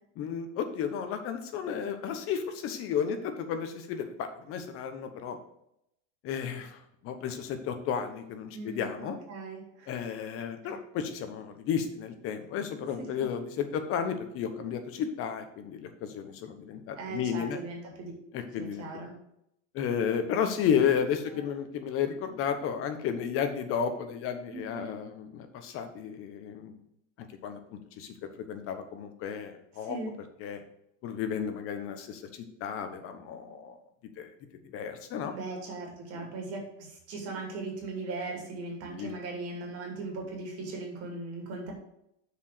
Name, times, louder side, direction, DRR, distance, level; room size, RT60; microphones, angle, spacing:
voice 1, 0.2-5.4 6.2-6.8 7.0-9.2 9.9-17.6 18.3-18.8 19.7-26.8 27.4-30.0 30.4-30.6 31.0-33.8 34.2-34.3 34.7-35.3 36.2-36.3 38.9-39.2, left 7 dB, 40° left, 8 dB, 1.1 m, -33 dB
voice 2, 8.5-9.9 10.6-10.8 13.0-13.3 17.0-18.1 18.6-19.1 21.3-21.5 24.5-25.0 29.8-30.1 35.3-41.7, right 3 dB, 40° right, 1 dB, 2.5 m, -39 dB
6.7 x 4.9 x 6.7 m, 0.77 s
supercardioid pair, 150°, 36 cm